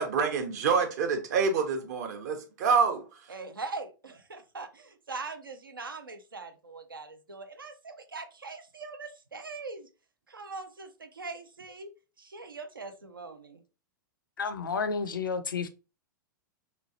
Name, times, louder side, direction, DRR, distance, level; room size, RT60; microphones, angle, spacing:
voice 1, 0.0-3.0, right 5 dB, 55° right, 0.8 m, -27 dB
voice 2, 3.3-9.9 10.3-11.9 12.2-13.6, right 3 dB, 85° right, 0.5 m, -42 dB
voice 3, 14.4-15.7, left 5 dB, 75° left, 0.4 m, -31 dB
3.1 x 2.3 x 2.8 m
figure-of-eight pair, 100°, 11 cm